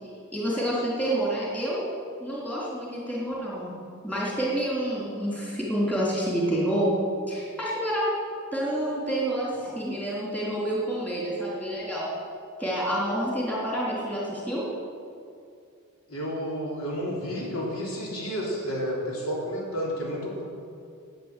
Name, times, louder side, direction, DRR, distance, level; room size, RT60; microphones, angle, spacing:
voice 1, 0.3-1.9 2.2-3.7 4.0-6.9 7.3-8.1 8.5-12.1 12.6-14.6, right 1 dB, 5° left, -6 dB, 3.6 m, -28 dB
voice 2, 16.1-20.5, equal, 75° left, -4 dB, 3.5 m, -31 dB
11.0 x 9.4 x 8.4 m, 2.4 s
head